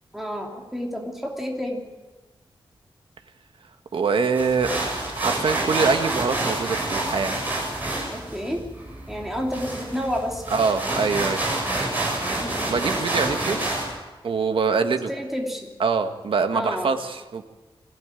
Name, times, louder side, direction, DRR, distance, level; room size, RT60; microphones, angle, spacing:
voice 1, 0.1-1.9 8.1-8.7 9.1-10.7 12.4-12.9 15.1-15.7 16.5-16.9, equal, 5° right, 0 dB, 2.9 m, -30 dB
voice 2, 3.9-4.8 5.1-7.4 10.5-11.4 12.7-13.6 14.2-15.1 15.8-17.4, right 5 dB, 65° right, 7 dB, 1.7 m, -24 dB
sound 1, 4.3-13.9, right 2 dB, 20° right, 7.7 m, -28 dB
22.0 x 16.5 x 9.2 m, 1.2 s
wide cardioid pair, 165°, 9 cm